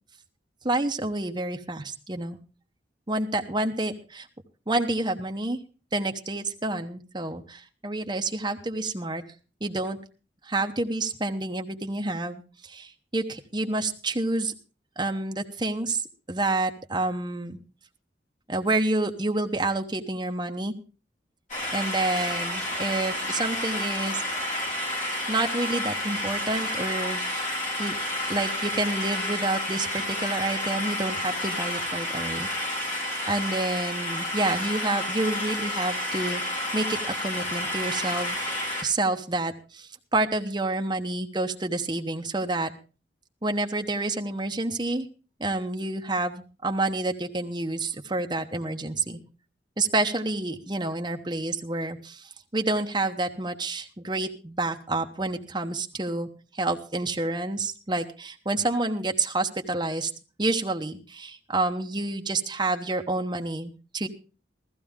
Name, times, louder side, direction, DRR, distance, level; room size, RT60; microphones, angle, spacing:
voice 1, 0.6-2.4 3.1-4.3 4.7-5.6 5.9-9.2 9.6-10.0 10.4-14.5 15.0-16.0 16.3-17.6 18.5-20.7 21.7-24.2 25.3-27.2 27.8-27.9 28.3-32.5 33.3-38.4 38.8-42.7 43.4-45.1 45.4-49.2 49.8-60.1 60.4-64.1, right 2 dB, 25° right, 4 dB, 1.0 m, -28 dB
sound 1, 21.5-38.8, left 1 dB, 40° left, 3.5 m, -30 dB
15.0 x 14.5 x 3.6 m, 0.34 s
head